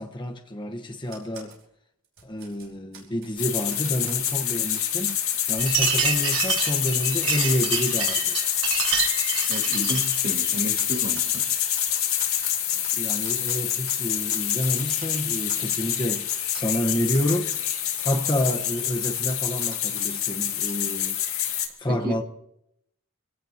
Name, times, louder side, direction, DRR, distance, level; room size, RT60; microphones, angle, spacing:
voice 1, 0.0-1.6 2.2-8.4 12.9-21.2 21.8-22.2, equal, 20° left, 1.2 m, -29 dB
Typewriter, 1.0-1.6 2.0-3.4 3.7-5.2 5.6-6.0 6.3-7.6 8.0-8.1 8.4-8.6 8.9-9.1 9.4-9.7 10.2-10.3 10.7-13.0 13.2-14.0 14.3-16.0 16.3-17.7 18.0-18.1 18.6-20.2 20.7-20.8, right 6 dB, 65° right, 5.1 m, -46 dB
sound 1, 3.4-21.7, left 10 dB, 70° left, 2.5 m, -26 dB
sound 2, 5.6-10.2, right 7 dB, 90° right, 5.6 m, -27 dB
voice 2, 9.5-11.4 21.9-22.1, right 1 dB, 40° right, 2.1 m, -32 dB
26.5 x 17.0 x 2.9 m
head